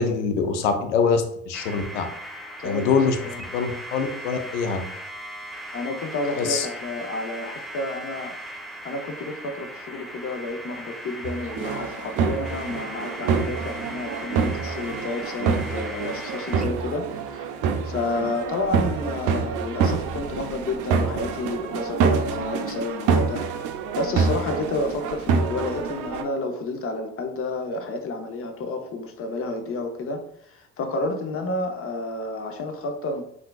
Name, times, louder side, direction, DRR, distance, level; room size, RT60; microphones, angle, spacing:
voice 1, 0.0-2.1 2.6-3.2 3.5-4.8 6.4-6.7, left 5 dB, 85° left, 6 dB, 0.5 m, -24 dB
sound 1, 1.5-16.8, right 1 dB, ahead, 0.4 m, -38 dB
voice 2, 2.6-3.4 5.7-8.4 8.8-17.1 17.3-17.5 17.8-23.4 24.0-33.2, left 2 dB, 40° left, 5 dB, 0.7 m, -30 dB
sound 2, 11.2-26.2, right 5 dB, 60° right, 0.5 m, -26 dB
3.6 x 2.4 x 2.3 m, 0.69 s
hypercardioid pair, 60°, 35 cm